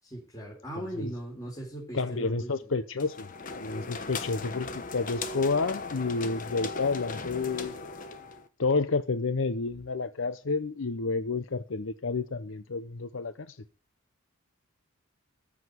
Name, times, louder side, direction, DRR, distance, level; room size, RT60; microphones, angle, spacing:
voice 1, 0.0-2.8, right 1 dB, 15° left, 3.9 m, -39 dB
voice 2, 1.9-3.3 3.6-7.8 8.6-13.6, left 4 dB, 65° left, 0.7 m, -30 dB
sound 1, 3.0-8.5, left 4 dB, 40° left, 1.2 m, -38 dB
14.0 x 5.0 x 9.2 m
head